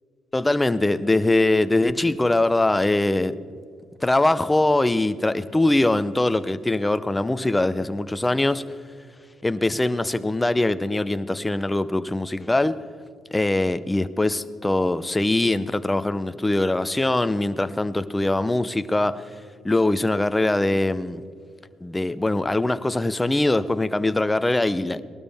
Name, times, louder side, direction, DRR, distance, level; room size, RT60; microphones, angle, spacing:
voice 1, 0.3-3.4 4.0-8.7 9.4-12.8 13.3-19.3 19.6-21.2 21.8-25.0, left 2 dB, 15° left, 0.6 m, -22 dB
19.5 x 12.5 x 3.5 m
cardioid pair, 90°, 0 cm